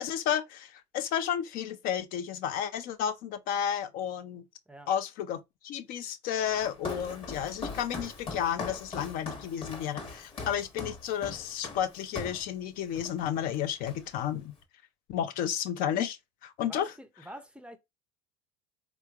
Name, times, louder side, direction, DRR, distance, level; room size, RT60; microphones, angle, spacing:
voice 1, 0.0-4.4 4.9-14.5 15.1-16.9, left 9 dB, 60° left, 0.5 m, -32 dB
Walk footsteps, 6.5-12.5 12.9-13.2 13.5-14.3, left 3 dB, 35° left, 1.2 m, -40 dB
voice 2, 16.6-17.8, equal, 5° right, 0.5 m, -46 dB
3.5 x 3.1 x 2.3 m
supercardioid pair, 105°, 17 cm